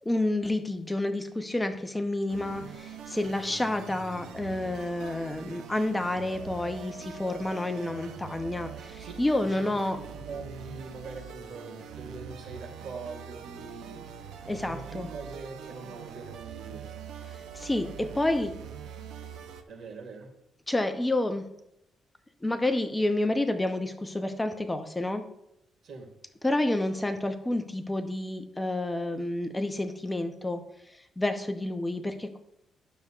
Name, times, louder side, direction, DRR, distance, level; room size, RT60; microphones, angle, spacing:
voice 1, 0.0-10.0 14.5-15.1 17.5-18.5 20.7-21.5 22.4-25.3 26.4-30.6 31.2-32.4, left 1 dB, 15° left, 7 dB, 0.7 m, -29 dB
sound 1, 2.3-19.6, right 7 dB, 80° right, 0.7 m, -43 dB
voice 2, 9.0-16.9 19.7-20.3 25.8-26.2, right 3 dB, 60° right, 3 dB, 1.9 m, -43 dB
11.5 x 6.7 x 2.4 m, 0.81 s
cardioid pair, 90°, 0 cm